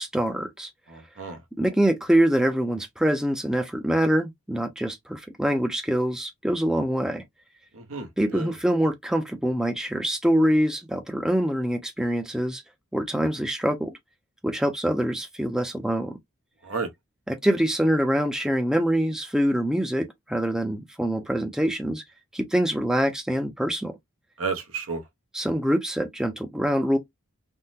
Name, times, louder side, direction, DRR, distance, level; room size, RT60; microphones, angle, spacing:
voice 1, 0.0-0.7 1.6-7.2 8.2-12.6 12.9-14.0 14.4-16.1 17.3-22.0 22.3-23.9 25.3-27.0, equal, 5° right, 0.4 m, -24 dB
voice 2, 0.9-1.4 7.7-8.5 16.6-16.9 24.4-25.0, right 4 dB, 75° right, 0.9 m, -32 dB
3.5 x 2.1 x 2.7 m
head